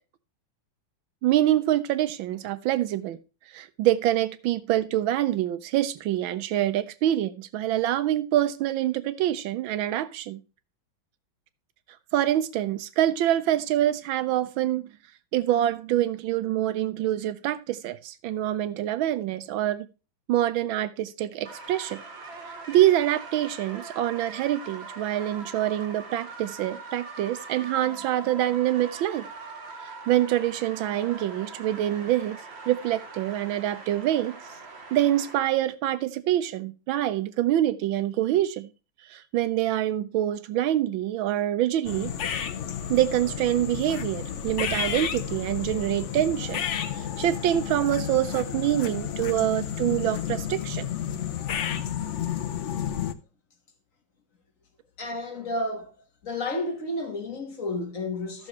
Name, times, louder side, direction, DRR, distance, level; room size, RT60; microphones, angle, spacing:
voice 1, 1.2-3.2 3.5-10.4 12.1-14.9 15.3-19.9 20.3-22.0 22.7-29.3 29.8-32.4 32.7-34.4 34.9-38.7 39.1-42.1 42.9-46.6 47.0-50.9, right 13 dB, 80° right, 1.4 m, -25 dB
sound 1, 21.4-35.4, right 3 dB, 40° right, 1.1 m, -42 dB
sound 2, 41.8-53.1, left 9 dB, 70° left, 0.6 m, -31 dB
voice 2, 55.0-55.9 56.2-58.5, left 2 dB, 45° left, 1.8 m, -31 dB
13.5 x 6.6 x 3.1 m
omnidirectional pair, 2.2 m